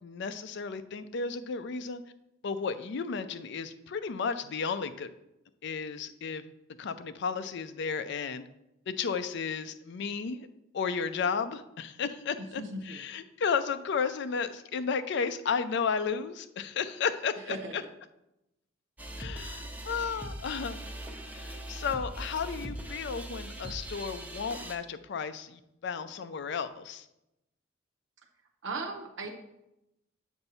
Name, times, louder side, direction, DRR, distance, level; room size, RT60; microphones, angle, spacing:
voice 1, 0.0-2.0 2.4-5.1 5.6-6.5 6.8-8.4 8.9-10.5 10.7-17.8 19.2-20.8 21.3-27.1, left 5 dB, 60° left, 11 dB, 0.4 m, -33 dB
voice 2, 12.4-13.0 17.5-17.9 28.6-29.3, right 2 dB, 65° right, 2 dB, 0.7 m, -37 dB
sound 1, 19.0-24.8, right 1 dB, 10° right, 0.5 m, -40 dB
7.9 x 2.6 x 5.4 m, 0.88 s
head